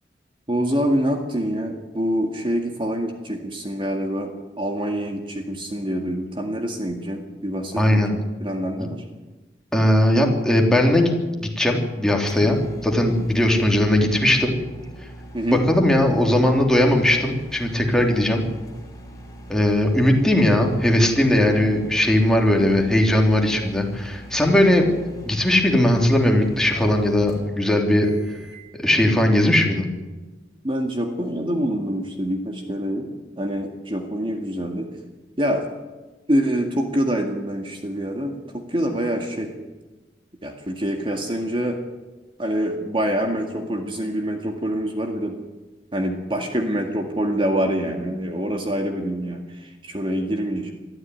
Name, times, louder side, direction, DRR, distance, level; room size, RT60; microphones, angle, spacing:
voice 1, 0.5-9.0 15.3-15.6 30.6-33.1 33.4-34.9 35.4-35.7 36.3-39.5 40.4-41.8 42.4-45.4 45.9-50.7, equal, 30° right, 3 dB, 2.0 m, -25 dB
voice 2, 7.8-8.1 9.7-11.1 11.4-14.5 15.5-18.4 19.5-25.0 25.2-28.1 28.7-29.9, left 1 dB, 5° left, 1 dB, 3.3 m, -19 dB
sound 1, 12.3-28.7, right 1 dB, 20° left, 4.7 m, -42 dB
22.5 x 14.0 x 9.6 m, 1.2 s
head